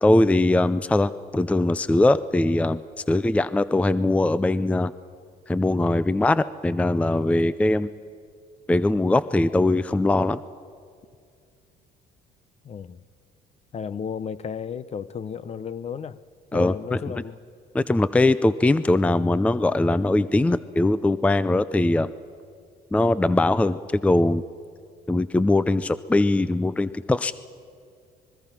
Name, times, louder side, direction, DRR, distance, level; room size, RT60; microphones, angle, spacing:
voice 1, 0.0-2.8 3.1-4.9 5.5-7.9 8.7-10.4 16.5-17.0 17.7-22.1 22.9-24.4 25.1-27.3, left 2 dB, 10° left, 0.5 m, -21 dB
voice 2, 12.6-13.0 13.7-16.2 16.5-17.4, left 7 dB, 40° left, 0.7 m, -33 dB
25.5 x 22.0 x 5.9 m
cardioid pair, 110°, 17 cm